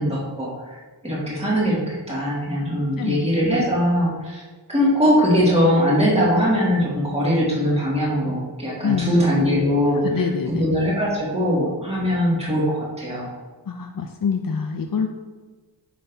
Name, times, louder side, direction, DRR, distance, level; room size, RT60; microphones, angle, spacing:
voice 1, 0.0-4.4 4.7-10.2 10.5-13.3, equal, 15° right, -6 dB, 2.2 m, -21 dB
voice 2, 8.8-9.2 10.0-10.7 13.7-15.1, left 6 dB, 50° left, 4 dB, 0.6 m, -25 dB
9.4 x 6.0 x 2.7 m, 1.3 s
wide cardioid pair, 65°, 43 cm